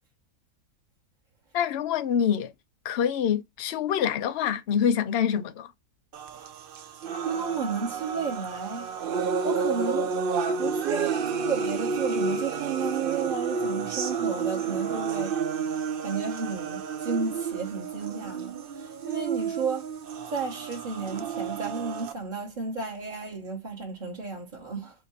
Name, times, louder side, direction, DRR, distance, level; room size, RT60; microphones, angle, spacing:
voice 1, 1.5-2.5 2.8-5.7, left 8 dB, 90° left, 0.5 m, -26 dB
sound 1, 6.1-22.1, right 5 dB, 70° right, 0.5 m, -30 dB
voice 2, 7.2-8.9 9.4-10.1 10.6-11.1 11.4-15.3 16.0-18.5 19.0-19.8 20.3-24.9, right 5 dB, 35° right, 1.0 m, -32 dB
4.6 x 2.6 x 4.1 m
omnidirectional pair, 1.7 m